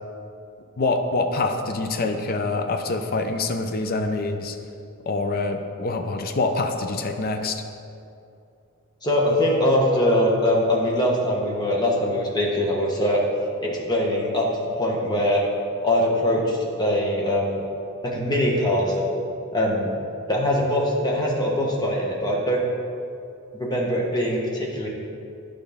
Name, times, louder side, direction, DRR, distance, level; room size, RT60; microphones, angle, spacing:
voice 1, 0.8-4.5 5.1-7.6, left 3 dB, 45° left, 5 dB, 0.5 m, -25 dB
voice 2, 9.0-13.2 13.6-15.4 15.8-17.6 18.0-19.1 19.5-19.9 20.3-22.6 23.5-24.9, left 1 dB, 20° left, -2 dB, 1.1 m, -22 dB
11.5 x 5.2 x 3.5 m, 2.6 s
head